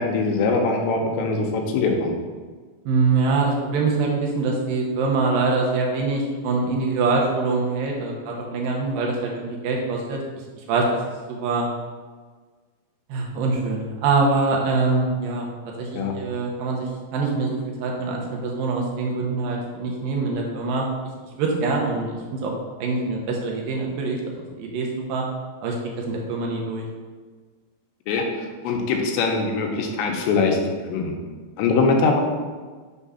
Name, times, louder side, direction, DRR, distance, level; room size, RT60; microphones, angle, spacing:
voice 1, 0.0-2.1 15.9-16.1 28.1-28.2 28.6-30.6 30.9-31.1 31.6-32.2, left 4 dB, 85° left, 2 dB, 3.0 m, -22 dB
voice 2, 2.9-10.2 10.6-10.8 11.3-11.7 13.1-15.5 15.8-20.9 21.4-22.5 22.8-25.3 25.6-25.8 26.1-26.9, right 3 dB, 80° right, -1 dB, 2.1 m, -24 dB
6.8 x 3.6 x 5.5 m, 1.4 s
omnidirectional pair, 5.0 m